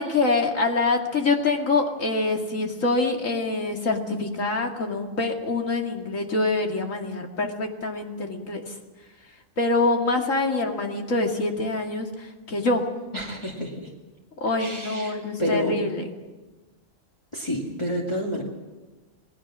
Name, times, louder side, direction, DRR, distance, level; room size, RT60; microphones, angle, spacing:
voice 1, 0.0-8.8 9.6-12.8 14.4-16.1, left 3 dB, 75° left, 2 dB, 2.8 m, -25 dB
voice 2, 13.1-13.9 14.6-15.7 17.3-18.4, equal, 20° left, -3 dB, 2.3 m, -29 dB
27.5 x 19.0 x 6.2 m, 1.2 s
omnidirectional pair, 1.4 m